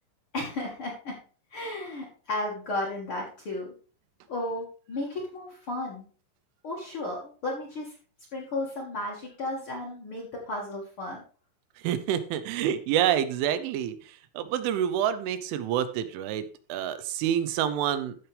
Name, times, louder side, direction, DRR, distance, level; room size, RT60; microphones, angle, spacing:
voice 1, 0.3-1.2 1.5-3.7 4.3-6.1 6.6-7.9 8.3-11.2, left 2 dB, 85° left, -3 dB, 1.1 m, -34 dB
voice 2, 11.8-18.2, right 10 dB, 90° right, 12 dB, 3.3 m, -28 dB
14.5 x 6.0 x 3.3 m, 0.39 s
omnidirectional pair, 5.5 m